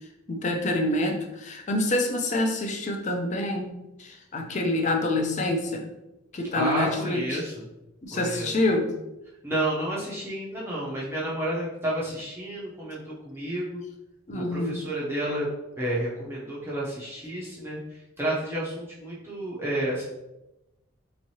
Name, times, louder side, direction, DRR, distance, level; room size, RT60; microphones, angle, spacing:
voice 1, 0.3-3.7 4.0-5.9 6.3-7.4 8.0-8.9 14.3-14.8, left 1 dB, 35° left, 3 dB, 0.4 m, -27 dB
voice 2, 6.5-7.6 8.1-8.5 9.4-13.8 14.3-15.5 15.7-17.8 18.2-20.0, right 1 dB, 10° right, -6 dB, 0.5 m, -30 dB
3.5 x 3.1 x 2.7 m, 0.97 s
head